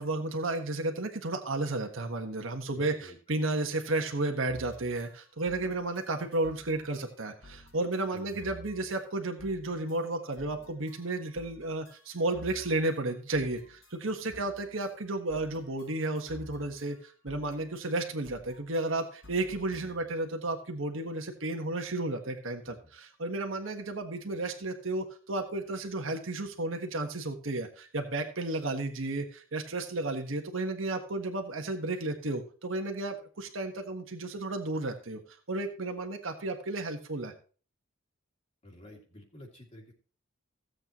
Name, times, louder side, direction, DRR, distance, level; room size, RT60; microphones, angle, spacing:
voice 1, 0.0-35.2 35.5-37.3, right 2 dB, 70° right, 4 dB, 1.4 m, -33 dB
voice 2, 2.7-3.6 5.5-5.8 8.1-8.4 14.3-14.5 19.5-19.6 22.7-22.8 38.6-39.9, left 1 dB, 30° left, -2 dB, 2.3 m, -51 dB
sound 1, 4.5-20.2, left 1 dB, 70° left, 5.1 m, -53 dB
16.0 x 7.9 x 3.0 m, 0.39 s
head